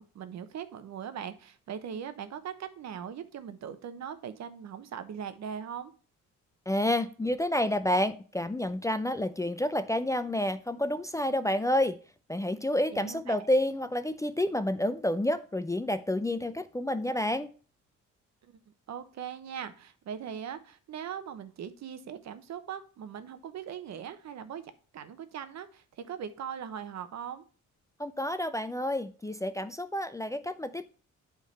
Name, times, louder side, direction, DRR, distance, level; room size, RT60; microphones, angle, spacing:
voice 1, 0.0-5.9 12.9-13.5 18.4-18.6 18.9-27.4, right 8 dB, 65° right, 1.0 m, -40 dB
voice 2, 6.7-12.0 12.3-17.5 28.0-30.8, left 1 dB, 10° left, 0.4 m, -29 dB
8.1 x 3.8 x 5.5 m
cardioid pair, 90°, 30 cm